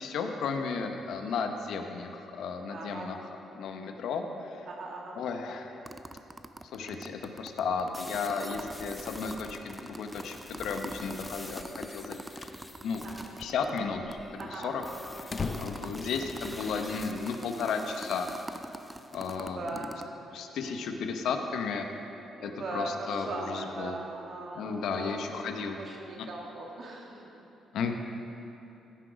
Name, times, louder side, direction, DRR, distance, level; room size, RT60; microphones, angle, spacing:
voice 1, 0.0-3.2 3.5-4.7 5.2-5.8 6.7-12.2 12.8-13.0 13.4-14.8 15.2-18.3 19.1-19.9 20.3-21.9 22.4-24.0 24.5-25.8 27.7-28.0, left 5 dB, 75° left, 5 dB, 0.8 m, -34 dB
voice 2, 0.6-0.9 2.7-3.1 4.7-5.2 13.0-13.3 14.4-14.9 19.3-20.0 20.3-20.4 22.4-25.1 25.8-27.4, right 2 dB, 55° right, -1 dB, 1.9 m, -39 dB
sound 1, 5.8-13.8 14.1-14.2 14.4-20.0, right 2 dB, 15° right, 0.5 m, -43 dB
sound 2, 7.9-13.5 14.8-19.4, left 1 dB, 10° left, 0.8 m, -47 dB
sound 3, 12.0-12.6 12.9-13.0 13.3-13.4 13.8-16.8, left 4 dB, 40° left, 0.6 m, -39 dB
14.5 x 6.2 x 5.1 m, 2.9 s
cardioid pair, 90°, 0 cm